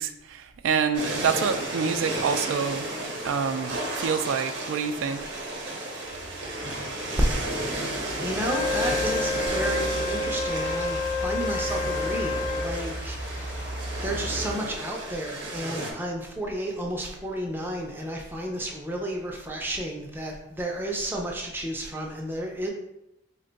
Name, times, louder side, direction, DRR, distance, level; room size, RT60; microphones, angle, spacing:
voice 1, 0.0-2.9 3.2-5.2, right 6 dB, 75° right, 9 dB, 0.3 m, -27 dB
sound 1, 0.9-15.9, right 1 dB, 60° right, 0.7 m, -33 dB
sound 2, 6.0-14.5, equal, 50° left, 0.7 m, -37 dB
voice 2, 7.3-7.7 8.2-22.7, right 1 dB, 10° right, 0 dB, 0.4 m, -32 dB
Wind instrument woodwind instrument, 8.4-12.8, left 3 dB, 80° left, 0.4 m, -29 dB
3.5 x 2.2 x 3.9 m, 0.87 s
head